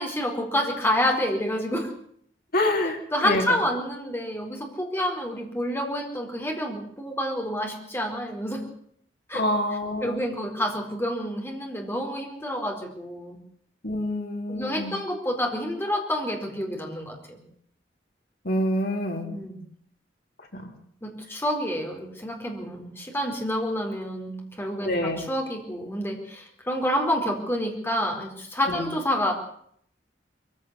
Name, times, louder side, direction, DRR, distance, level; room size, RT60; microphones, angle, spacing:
voice 1, 0.0-1.9 3.1-8.7 9.3-9.4 10.0-13.4 14.5-17.4 19.3-19.6 21.0-29.3, equal, 15° left, 2 dB, 4.5 m, -28 dB
voice 2, 2.5-3.0 3.2-3.4 9.3-10.2 13.8-15.0 18.4-19.3 20.5-20.6 24.8-25.3 28.7-28.8, left 1 dB, 60° left, 1 dB, 4.4 m, -26 dB
22.0 x 15.5 x 8.2 m, 0.65 s
head